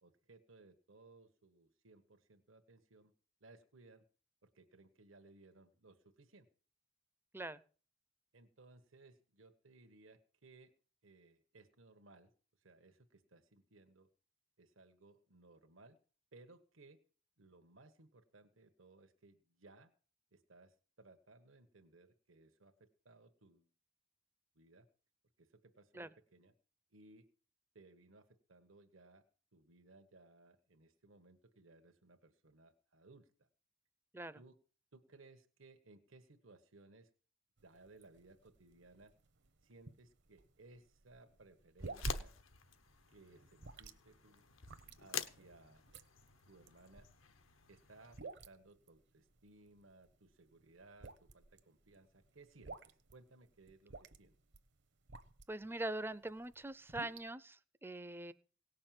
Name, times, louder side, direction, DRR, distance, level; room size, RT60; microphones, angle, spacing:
voice 1, 0.0-3.1 3.4-4.1 4.4-6.5 8.3-10.7 11.0-12.3 12.6-14.1 14.6-16.0 16.3-17.0 17.4-19.9 20.3-23.7 24.5-24.9 25.4-26.5 26.9-27.3 27.7-29.2 29.5-33.5 34.3-34.6 34.9-37.1 37.6-39.1 39.6-42.3 43.1-44.4 45.0-45.8 46.5-47.1 47.7-54.4, right 2 dB, 80° right, 6 dB, 1.4 m, -62 dB
sound 1, 37.6-55.7 56.1-57.3, right 2 dB, 60° right, 1.0 m, -51 dB
sound 2, 41.8-48.2, left 8 dB, 75° left, 1.1 m, -49 dB
voice 2, 55.5-58.3, right 2 dB, 10° right, 15 dB, 0.5 m, -43 dB
18.0 x 6.6 x 7.6 m, 0.41 s
head